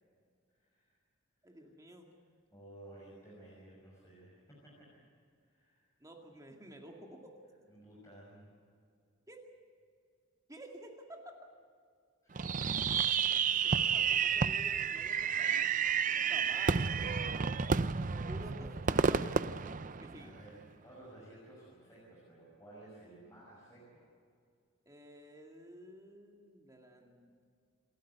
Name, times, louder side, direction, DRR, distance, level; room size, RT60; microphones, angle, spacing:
voice 1, 0.5-1.0 1.4-1.7 2.5-4.9 5.4-5.9 7.7-8.5 12.2-12.9 16.4-17.8 20.2-24.0 24.9-25.1, right 1 dB, 15° left, -5 dB, 5.9 m, -56 dB
voice 2, 1.4-2.1 6.0-7.3 9.3-9.5 10.5-11.4 13.6-15.7 16.1-16.8 18.2-18.8 19.1-19.3 20.0-20.3 24.9-27.4, right 1 dB, 15° right, 1 dB, 2.2 m, -52 dB
Fireworks, 12.4-20.5, right 6 dB, 40° right, 0.6 m, -31 dB
28.0 x 12.5 x 9.4 m, 2.2 s
head